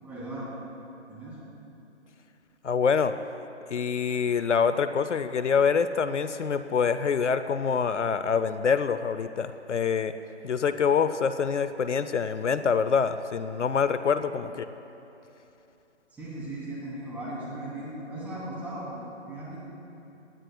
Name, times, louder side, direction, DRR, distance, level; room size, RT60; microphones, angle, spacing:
voice 1, 0.0-0.5 1.1-1.4 16.1-19.6, right 1 dB, 5° right, -8 dB, 2.8 m, -37 dB
voice 2, 2.6-3.1 3.7-10.1 10.4-14.7, left 6 dB, 80° left, 11 dB, 0.6 m, -25 dB
26.0 x 10.5 x 2.3 m, 2.9 s
figure-of-eight pair, 150°, 35 cm